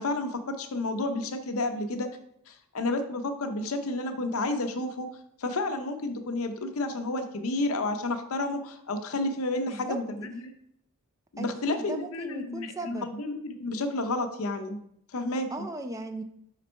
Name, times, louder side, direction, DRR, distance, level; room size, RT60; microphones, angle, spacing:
voice 1, 0.0-2.1 2.5-5.1 5.4-10.5 11.3-14.8 15.1-15.7, left 2 dB, 70° left, 7 dB, 0.7 m, -31 dB
voice 2, 9.7-10.0 11.4-13.1 15.5-16.2, right 2 dB, 15° right, 6 dB, 0.3 m, -37 dB
5.2 x 4.1 x 4.4 m, 0.73 s
head